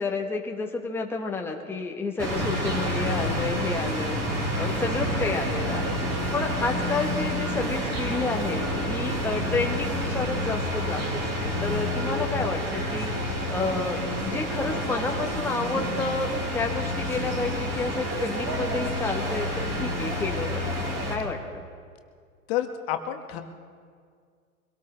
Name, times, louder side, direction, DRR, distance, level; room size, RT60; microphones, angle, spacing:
voice 1, 0.0-4.2 4.5-6.0 6.3-13.1 13.5-21.7, left 3 dB, 5° left, 2 dB, 1.1 m, -30 dB
sound 1, 2.2-21.2, equal, 35° right, 4.2 m, -29 dB
sound 2, 4.7-10.5, right 4 dB, 75° right, 1.3 m, -38 dB
voice 2, 22.5-23.4, left 11 dB, 45° left, 7 dB, 1.2 m, -30 dB
24.0 x 18.0 x 3.3 m, 2.1 s
figure-of-eight pair, 100°, 43 cm